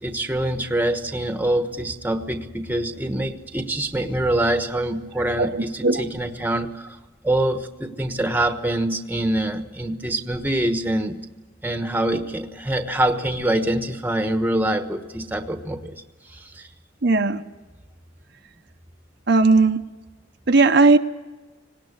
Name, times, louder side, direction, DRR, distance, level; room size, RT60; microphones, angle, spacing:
voice 1, 0.0-7.0 7.2-11.2 11.6-16.0 16.3-16.7, right 1 dB, 10° right, 7 dB, 1.1 m, -25 dB
voice 2, 5.4-6.0 17.0-17.4 19.3-19.8 20.5-21.0, right 3 dB, 55° right, 6 dB, 0.8 m, -17 dB
19.0 x 18.0 x 9.8 m, 1.2 s
head